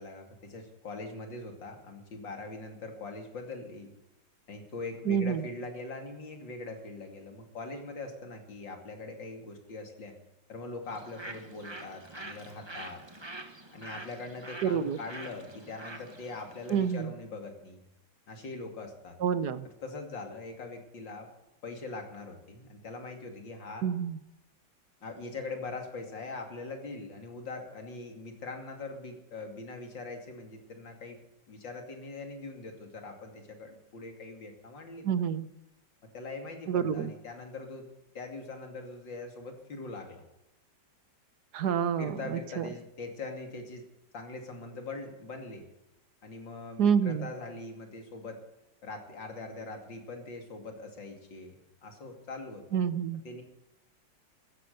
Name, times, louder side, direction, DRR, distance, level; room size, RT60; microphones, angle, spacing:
voice 1, 0.0-3.9 4.5-10.1 10.5-13.0 13.7-17.8 18.3-19.2 19.8-21.3 21.6-23.9 25.0-35.1 36.1-37.9 38.1-40.2 42.0-43.9 44.1-45.7 46.2-48.4 48.8-51.5 51.8-52.8 53.2-53.4, left 3 dB, 85° left, 4 dB, 3.4 m, -42 dB
voice 2, 5.1-5.4 14.6-15.0 16.7-17.1 19.2-19.7 23.8-24.2 35.0-35.5 36.7-37.1 41.5-42.7 46.8-47.3 52.7-53.2, right 7 dB, 65° right, 14 dB, 1.4 m, -28 dB
Bird, 10.9-17.0, right 2 dB, 15° right, 1.5 m, -46 dB
15.0 x 13.0 x 6.8 m, 0.90 s
omnidirectional pair, 2.0 m